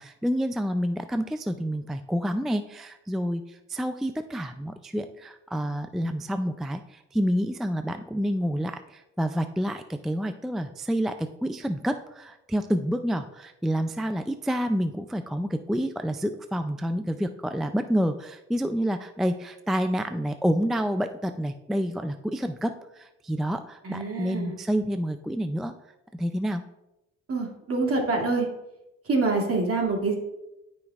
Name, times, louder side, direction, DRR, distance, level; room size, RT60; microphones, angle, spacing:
voice 1, 0.0-25.7 26.1-26.6, equal, ahead, 8 dB, 0.3 m, -28 dB
voice 2, 23.8-24.6 27.3-28.5 29.1-30.1, right 3 dB, 50° right, -1 dB, 2.4 m, -26 dB
12.5 x 5.3 x 2.4 m, 0.91 s
cardioid pair, 90°, 30 cm